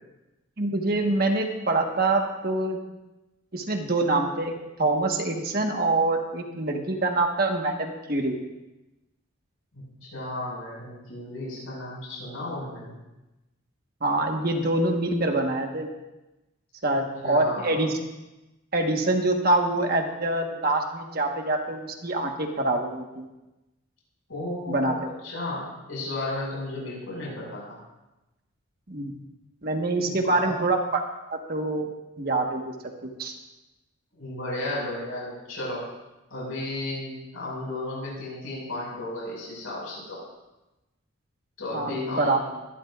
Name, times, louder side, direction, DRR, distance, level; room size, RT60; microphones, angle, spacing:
voice 1, 0.6-2.8 3.5-4.5 4.8-8.4 14.0-15.9 16.8-17.9 18.7-23.3 24.7-24.9 28.9-29.1 29.6-31.0 31.3-31.9 32.2-32.7 33.2-33.3 41.7-42.4, right 2 dB, 45° right, 3 dB, 1.3 m, -25 dB
voice 2, 9.7-12.9 16.9-17.8 24.3-27.8 30.0-30.5 34.1-35.9 36.3-40.2 41.6-42.4, left 2 dB, 80° left, -4 dB, 5.3 m, -34 dB
24.0 x 11.5 x 2.4 m, 1.0 s
head